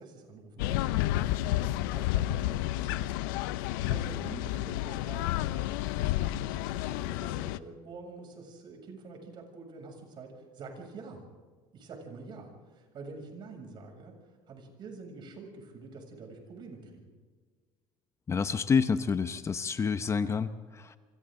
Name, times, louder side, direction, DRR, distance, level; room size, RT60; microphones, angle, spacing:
voice 1, 0.0-3.3 3.6-11.2 11.7-14.1 14.5-17.1, right 4 dB, 45° right, 2 dB, 7.3 m, -47 dB
sound 1, 0.6-7.6, left 15 dB, 90° left, 0.7 m, -30 dB
voice 2, 18.3-21.0, left 5 dB, 25° left, 11 dB, 0.9 m, -28 dB
28.5 x 25.5 x 3.9 m, 1.5 s
supercardioid pair, 110°, 10 cm